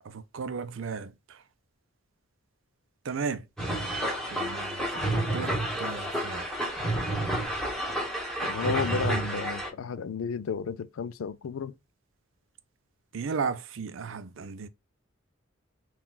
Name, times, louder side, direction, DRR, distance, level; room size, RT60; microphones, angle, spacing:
voice 1, 0.0-1.4 3.0-3.5 4.3-6.5 13.1-14.7, right 5 dB, 75° right, 0.5 m, -35 dB
sound 1, 3.6-9.7, right 1 dB, ahead, 1.1 m, -30 dB
voice 2, 8.4-11.7, left 6 dB, 85° left, 0.4 m, -32 dB
5.7 x 2.3 x 2.3 m
head